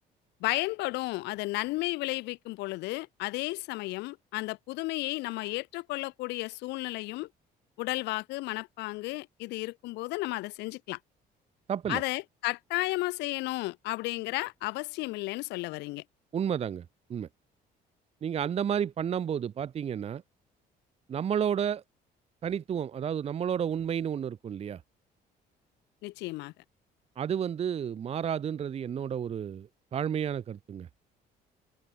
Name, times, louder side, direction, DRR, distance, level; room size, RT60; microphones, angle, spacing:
voice 1, 0.4-7.3 7.8-11.0 11.9-16.0 26.0-26.5, left 21 dB, 90° left, 1.6 m, -33 dB
voice 2, 11.7-12.0 16.3-16.8 17.1-17.3 18.2-20.2 21.1-21.8 22.4-24.8 27.2-30.9, right 8 dB, 35° right, 0.6 m, -31 dB
cardioid pair, 110°, 17 cm